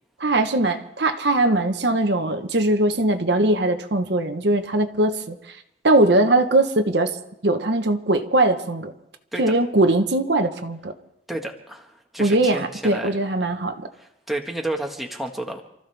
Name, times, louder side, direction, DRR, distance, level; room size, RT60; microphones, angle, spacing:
voice 1, 0.2-5.4 5.8-7.2 7.4-8.9 9.4-10.9 12.2-13.9, right 2 dB, 70° right, 6 dB, 1.2 m, -20 dB
voice 2, 11.3-13.1 14.0-15.6, right 1 dB, ahead, 1 dB, 1.6 m, -31 dB
28.5 x 14.5 x 3.5 m, 0.81 s
head